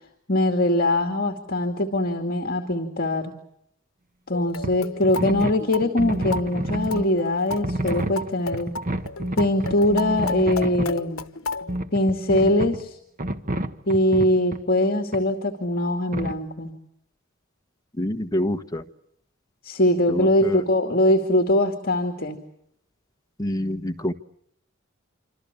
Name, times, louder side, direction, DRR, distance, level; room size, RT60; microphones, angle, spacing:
voice 1, 0.3-3.3 4.3-8.7 9.4-11.2 11.9-13.0 13.9-16.7 19.6-22.4, left 1 dB, 45° left, 3 dB, 2.4 m, -22 dB
sound 1, 4.3-11.8, left 3 dB, 80° left, 1.1 m, -34 dB
sound 2, 4.6-4.8 5.0-7.1 7.5-11.0 11.7-12.8 13.2-14.6 15.1-15.2 16.1-16.4, right 1 dB, 40° right, 1.5 m, -29 dB
voice 2, 18.0-18.8 20.1-20.6 23.4-24.1, left 1 dB, 20° left, 6 dB, 1.3 m, -26 dB
27.0 x 26.5 x 7.0 m, 0.74 s
head